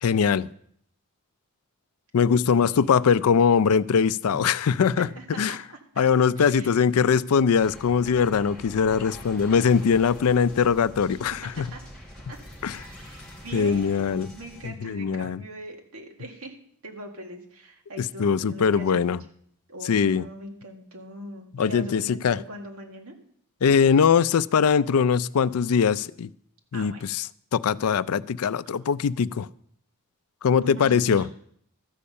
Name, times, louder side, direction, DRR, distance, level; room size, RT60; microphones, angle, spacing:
voice 1, 0.0-0.5 2.1-5.1 5.4-5.6 6.0-11.7 12.6-12.8 13.5-14.3 14.6-15.4 18.0-19.2 19.8-20.3 21.5-22.4 23.6-26.3 26.7-27.3 27.5-29.5 30.4-31.3, left 6 dB, 80° left, 17 dB, 0.4 m, -21 dB
voice 2, 2.5-3.3 5.0-5.8 6.4-7.2 11.6-11.8 12.3-12.4 12.8-16.6 16.8-19.2 19.7-23.2 26.7-27.0 30.5-31.3, right 1 dB, 70° right, 2 dB, 2.0 m, -41 dB
sound 1, 7.5-14.7, equal, 5° left, 3.0 m, -44 dB
13.0 x 5.4 x 8.5 m, 0.65 s
head